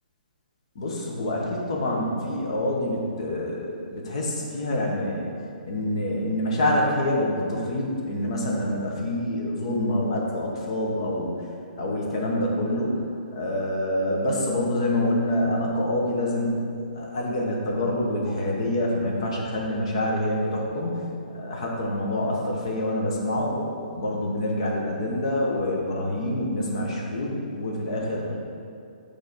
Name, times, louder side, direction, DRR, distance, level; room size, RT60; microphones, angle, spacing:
voice 1, 0.7-5.3 5.6-11.4 11.8-12.9 13.3-16.6 16.9-28.4, left 1 dB, 35° left, -2 dB, 1.0 m, -26 dB
8.6 x 3.3 x 4.1 m, 2.4 s
hypercardioid pair, 180°, 5 cm